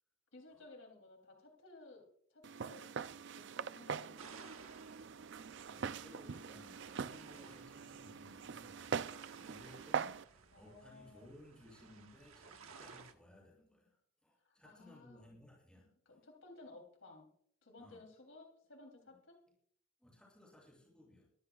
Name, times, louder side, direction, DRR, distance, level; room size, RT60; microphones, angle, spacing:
voice 1, 0.3-2.9 3.3-4.5 7.4-7.5 10.5-11.3 14.4-15.3 16.0-17.3 17.6-19.4, left 2 dB, 75° left, 1 dB, 3.2 m, -57 dB
Walk footsteps, 2.4-10.2, right 6 dB, 55° right, 0.4 m, -43 dB
sound 1, 4.2-13.1, right 5 dB, 85° right, 1.3 m, -58 dB
voice 2, 5.6-16.2 17.8-18.0 19.1-19.2 20.0-21.2, left 1 dB, 5° left, -3 dB, 7.2 m, -60 dB
23.5 x 15.0 x 2.4 m, 0.65 s
head